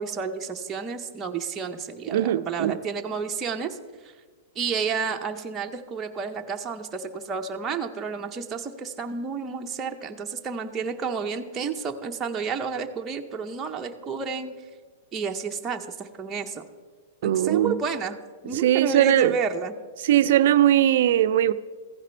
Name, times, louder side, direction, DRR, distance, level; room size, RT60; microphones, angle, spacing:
voice 1, 0.0-3.8 4.0-4.1 4.6-14.6 15.1-16.6 17.2-18.2 18.4-19.7, right 5 dB, 20° right, 0.6 m, -31 dB
voice 2, 2.1-2.8 17.2-17.7 18.6-19.3 20.0-21.5, right 12 dB, 65° right, 0.3 m, -20 dB
15.0 x 5.0 x 4.3 m
hypercardioid pair, 140°, 0 cm